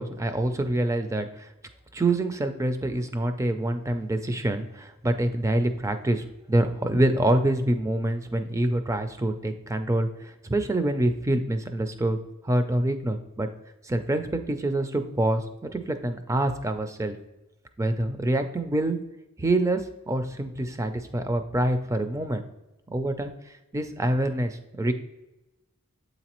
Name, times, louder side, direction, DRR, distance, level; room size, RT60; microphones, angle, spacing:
voice 1, 0.0-1.5 1.9-12.2 12.4-13.5 13.8-17.2 17.8-19.0 19.4-22.4 22.9-23.3 23.7-24.9, right 1 dB, 15° right, 8 dB, 0.4 m, -26 dB
8.0 x 4.0 x 2.9 m, 0.99 s
head